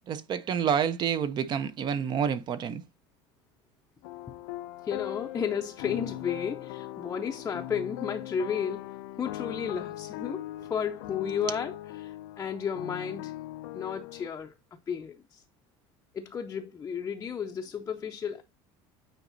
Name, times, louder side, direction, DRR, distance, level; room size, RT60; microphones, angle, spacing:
voice 1, 0.1-2.8, right 8 dB, 40° right, 0.6 m, -28 dB
sound 1, 4.0-14.3, left 15 dB, 85° left, 0.4 m, -40 dB
voice 2, 4.8-8.8 9.2-13.3 13.7-14.6 14.9-15.4 16.1-18.4, left 7 dB, 25° left, 0.6 m, -33 dB
9.1 x 4.1 x 2.6 m
cardioid pair, 130°, 12 cm